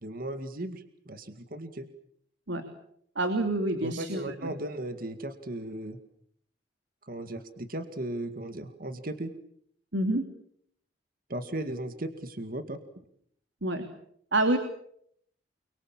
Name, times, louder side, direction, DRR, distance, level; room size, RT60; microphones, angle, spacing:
voice 1, 0.0-1.9 3.8-6.0 7.0-9.3 11.3-12.8, right 1 dB, 50° right, 9 dB, 2.1 m, -36 dB
voice 2, 3.1-4.5 9.9-10.2 13.6-13.8 14.3-14.6, right 1 dB, 85° right, 6 dB, 3.1 m, -27 dB
29.5 x 24.0 x 7.3 m, 0.68 s
head